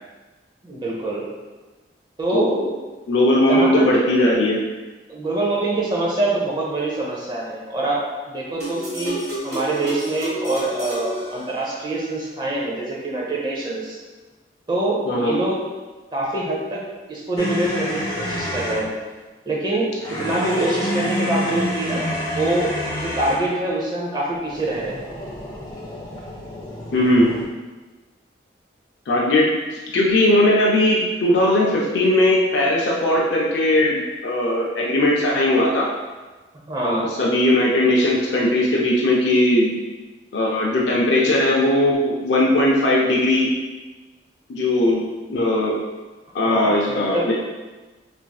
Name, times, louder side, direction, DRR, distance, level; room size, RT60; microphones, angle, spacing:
voice 1, 0.6-1.3 2.2-2.6 3.5-3.9 5.1-8.0 8.3-14.0 14.7-15.6 16.1-16.8 17.1-18.9 19.5-19.9 20.2-22.0 22.3-22.7 23.0-25.0 36.7-37.1 46.5-47.3, right 2 dB, 25° right, -4 dB, 0.6 m, -25 dB
voice 2, 3.1-4.6 15.1-15.4 26.9-27.3 29.1-35.9 36.8-39.7 40.3-43.5 44.5-45.7 46.3-47.3, left 1 dB, 85° left, -3 dB, 0.4 m, -19 dB
sound 1, 8.6-12.1, right 1 dB, 60° right, 1.3 m, -31 dB
sound 2, 17.4-18.9 20.0-23.5 24.4-27.5, equal, 25° left, 0.4 m, -28 dB
3.1 x 2.5 x 2.3 m, 1.2 s
head